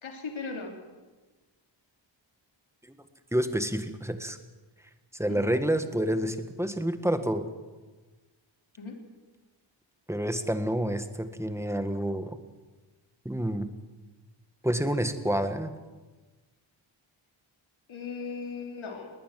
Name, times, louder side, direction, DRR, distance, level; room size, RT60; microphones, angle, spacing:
voice 1, 0.0-0.7 5.3-5.5 8.8-9.0 17.9-19.1, left 4 dB, 75° left, 3 dB, 3.4 m, -37 dB
voice 2, 3.3-4.4 5.1-7.5 10.1-12.4 13.2-13.7 14.6-15.7, right 1 dB, 5° right, 9 dB, 1.7 m, -28 dB
20.5 x 19.5 x 7.6 m, 1.2 s
wide cardioid pair, 100°, 48 cm